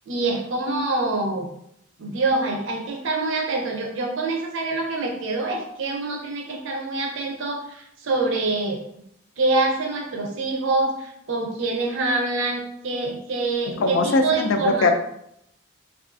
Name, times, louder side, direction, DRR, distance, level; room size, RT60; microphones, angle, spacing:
voice 1, 0.1-1.5 2.0-8.8 9.4-14.9, right 2 dB, 70° right, 1 dB, 0.5 m, -25 dB
voice 2, 13.8-14.9, left 3 dB, 70° left, 6 dB, 0.3 m, -20 dB
2.4 x 2.4 x 2.3 m, 0.75 s
head